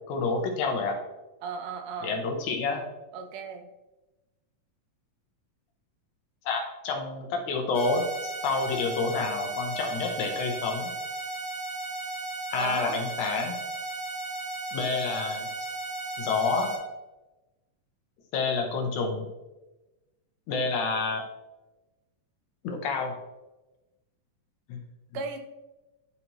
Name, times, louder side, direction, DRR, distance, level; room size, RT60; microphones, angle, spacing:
voice 1, 0.1-1.0 2.0-2.8 6.5-10.9 12.5-13.6 14.7-15.7 16.2-16.7 18.3-19.3 20.5-21.2 22.6-23.1 24.7-24.8, left 4 dB, 70° left, 2 dB, 2.1 m, -29 dB
voice 2, 1.4-2.2 3.1-3.7 12.6-13.0 25.1-25.4, right 5 dB, 80° right, 6 dB, 2.2 m, -35 dB
sound 1, 7.7-16.8, right 2 dB, 40° left, 2.1 m, -35 dB
11.0 x 4.0 x 2.9 m, 1.1 s
omnidirectional pair, 3.7 m